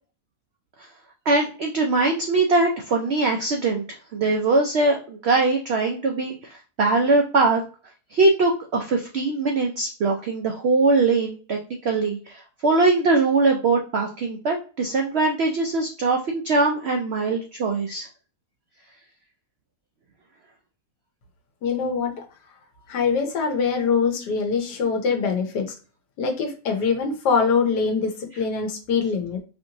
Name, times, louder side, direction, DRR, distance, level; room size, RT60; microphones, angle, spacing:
voice 1, 1.3-3.8 4.1-6.3 6.8-7.6 8.1-18.1, right 3 dB, 85° right, 2 dB, 0.5 m, -21 dB
voice 2, 21.6-22.3 22.9-25.7 26.2-29.4, left 5 dB, 85° left, 4 dB, 1.4 m, -23 dB
4.5 x 2.6 x 2.8 m, 0.38 s
omnidirectional pair, 1.7 m